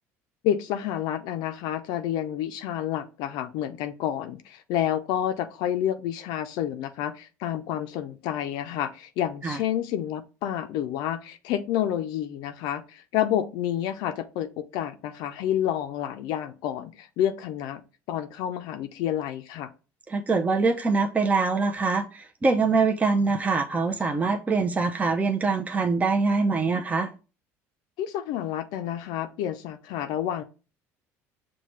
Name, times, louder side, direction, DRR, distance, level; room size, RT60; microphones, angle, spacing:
voice 1, 0.4-17.8 18.1-19.7 28.0-30.4, left 11 dB, 70° left, 0.4 m, -29 dB
voice 2, 20.1-27.1, right 4 dB, 20° right, 0.5 m, -24 dB
5.6 x 2.2 x 3.1 m
supercardioid pair, 85°, 7 cm